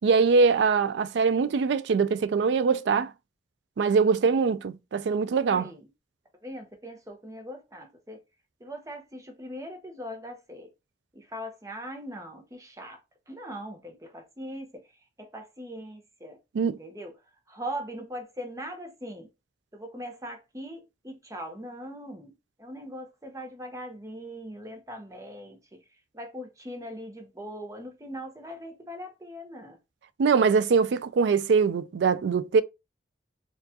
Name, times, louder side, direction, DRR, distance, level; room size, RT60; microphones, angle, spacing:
voice 1, 0.0-3.1 3.8-5.7 16.5-16.8 30.2-32.6, right 5 dB, 85° right, 0.4 m, -23 dB
voice 2, 5.5-5.9 6.4-8.2 8.6-10.7 11.1-13.0 13.3-14.8 15.2-16.4 16.6-17.1 17.5-19.3 19.7-25.8 26.1-29.8, equal, 20° right, 0.8 m, -40 dB
4.5 x 2.4 x 2.7 m
head